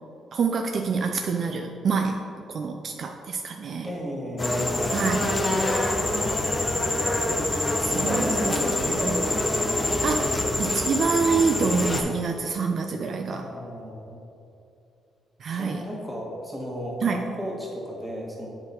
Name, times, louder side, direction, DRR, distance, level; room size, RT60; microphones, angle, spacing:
voice 1, 0.3-3.9 4.9-5.3 7.5-8.6 9.0-9.2 10.0-13.4 15.4-15.9 17.0-17.3, right 5 dB, 55° right, 4 dB, 0.4 m, -27 dB
voice 2, 3.8-9.3 10.2-10.4 10.7-10.8 13.2-14.2 15.5-18.5, equal, 5° right, -3 dB, 1.6 m, -35 dB
sound 1, 4.4-12.0, left 1 dB, 25° left, 0.8 m, -25 dB
7.7 x 3.8 x 4.3 m, 2.6 s
cardioid pair, 90°, 0 cm